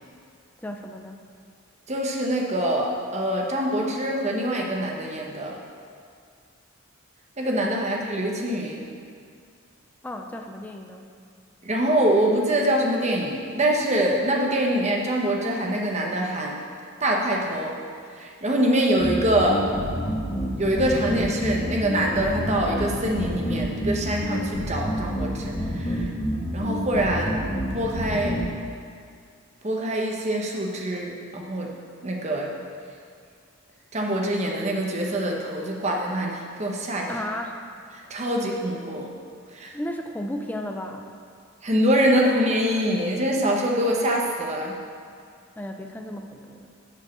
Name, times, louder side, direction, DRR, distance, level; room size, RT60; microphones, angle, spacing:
voice 1, 0.6-1.2 7.8-7.9 10.0-11.0 37.1-37.6 38.0-38.3 39.7-41.1 45.6-46.7, left 1 dB, 10° left, 3 dB, 0.4 m, -34 dB
voice 2, 1.9-5.6 7.4-8.9 11.6-16.6 17.0-17.7 18.1-19.7 20.6-26.1 26.5-27.4 27.7-28.4 29.6-31.7 32.0-32.5 33.9-37.1 37.9-39.1 39.5-39.7 41.6-44.8, right 1 dB, 30° right, 0 dB, 1.0 m, -24 dB
sound 1, 19.0-28.5, equal, 30° left, 1.9 m, -28 dB
8.1 x 4.7 x 6.8 m, 2.2 s
head